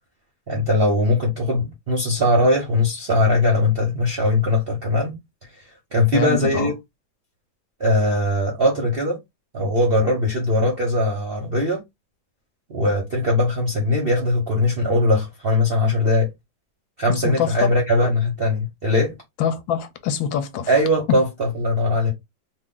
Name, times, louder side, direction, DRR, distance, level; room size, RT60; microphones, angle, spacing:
voice 1, 0.5-5.1 5.9-6.7 7.8-9.2 9.5-11.8 12.7-16.3 17.0-19.1 20.7-22.1, left 1 dB, 50° right, 0.7 m, -20 dB
voice 2, 6.1-6.7 17.2-17.7 19.4-20.7, left 7 dB, 80° left, 1.3 m, -24 dB
3.1 x 2.4 x 3.7 m
omnidirectional pair, 2.2 m